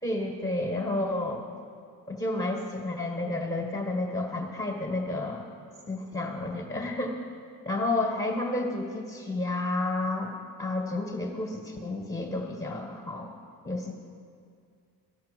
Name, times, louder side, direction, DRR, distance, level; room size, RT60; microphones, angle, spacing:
voice 1, 0.0-1.4 2.1-5.5 5.9-7.2 7.6-10.3 10.6-13.3 13.6-13.9, left 2 dB, 10° left, 0 dB, 1.6 m, -31 dB
14.5 x 5.6 x 5.3 m, 2.2 s
supercardioid pair, 50°, 47 cm